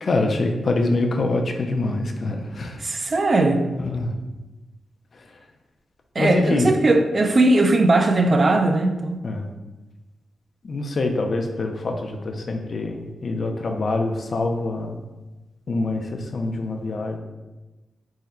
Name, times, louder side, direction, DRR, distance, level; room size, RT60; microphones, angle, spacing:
voice 1, 0.0-2.8 3.8-4.2 5.1-5.5 6.2-6.7 9.2-9.5 10.6-15.0 15.7-17.2, left 2 dB, 50° left, 3 dB, 0.4 m, -25 dB
voice 2, 2.8-3.6 6.2-9.2, right 2 dB, 35° right, 5 dB, 0.3 m, -19 dB
3.6 x 2.1 x 4.2 m, 1.1 s
wide cardioid pair, 110°, 0 cm